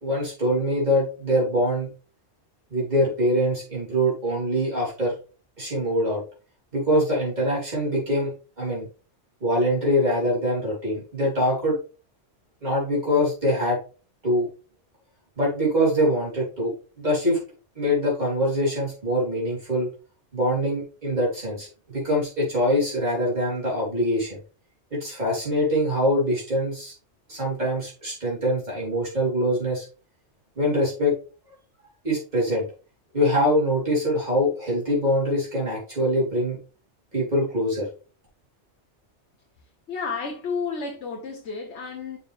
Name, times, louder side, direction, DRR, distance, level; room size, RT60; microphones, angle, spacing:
voice 1, 0.0-1.9 2.7-5.1 5.6-6.2 6.7-8.3 8.6-8.9 9.4-11.8 12.6-13.8 14.2-14.5 15.4-17.4 17.8-19.9 20.3-24.4 24.9-26.9 27.3-29.9 30.6-31.1 32.0-32.6 33.1-36.6 37.1-37.9, equal, 35° right, 3.7 m, -24 dB
voice 2, 39.9-42.2, left 5 dB, 70° left, 1.4 m, -31 dB
6.8 x 5.5 x 3.5 m
omnidirectional pair, 1.2 m